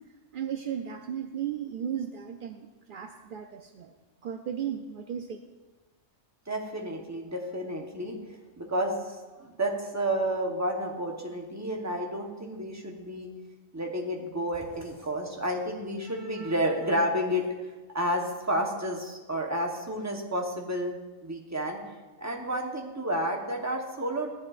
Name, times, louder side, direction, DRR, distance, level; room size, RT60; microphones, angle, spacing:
voice 1, 0.3-3.9 4.2-5.4, right 9 dB, 70° right, 6 dB, 0.5 m, -35 dB
voice 2, 6.5-8.2 8.6-13.3 13.7-17.5 17.9-21.0 21.2-21.8 22.2-24.3, equal, 15° right, 1 dB, 0.9 m, -31 dB
13.5 x 9.9 x 2.5 m, 1.2 s
omnidirectional pair, 1.4 m